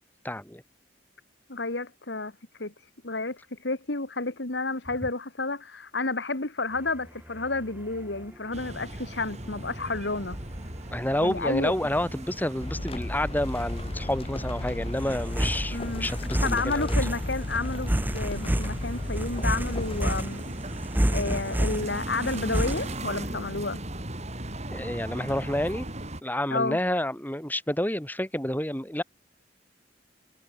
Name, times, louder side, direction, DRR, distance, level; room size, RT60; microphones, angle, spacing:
voice 1, 0.2-0.6 10.9-16.9 24.7-25.9 26.2-29.0, left 1 dB, 10° left, 4.5 m, -29 dB
voice 2, 1.5-2.3 2.6-2.7 3.0-10.4 11.2-11.7 15.7-16.1 16.4-20.4 21.1-23.8 26.5-26.8, left 3 dB, 75° left, 2.3 m, -31 dB
sound 1, 6.8-23.0, equal, 10° right, 1.0 m, -32 dB
sound 2, 8.5-26.2, right 1 dB, 40° right, 6.4 m, -38 dB
sound 3, 12.6-20.2, left 2 dB, 35° left, 0.8 m, -35 dB
head